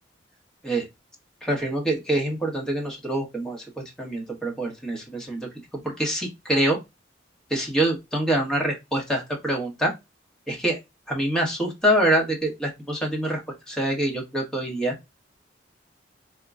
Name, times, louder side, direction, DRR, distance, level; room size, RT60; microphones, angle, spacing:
voice 1, 1.4-6.8 7.5-9.9 10.5-10.8 11.1-13.4 13.7-14.9, right 1 dB, 5° left, -1 dB, 1.1 m, -25 dB
3.6 x 2.2 x 3.5 m, 0.22 s
head